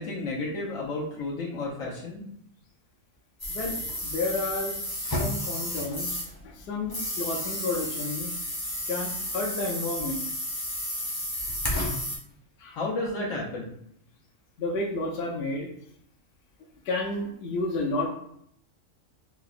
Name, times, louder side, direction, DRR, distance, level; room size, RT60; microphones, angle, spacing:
voice 1, 0.0-2.2 12.7-13.7, left 2 dB, 80° left, -5 dB, 1.2 m, -32 dB
sound 1, 3.4-6.4 6.8-12.2, left 1 dB, 25° left, 0.5 m, -32 dB
voice 2, 4.0-6.2 6.4-8.4 8.9-10.2 12.6-12.8 14.6-15.7 16.8-18.1, left 2 dB, 60° left, -1 dB, 0.7 m, -31 dB
4.5 x 2.0 x 2.4 m, 0.71 s
omnidirectional pair, 1.4 m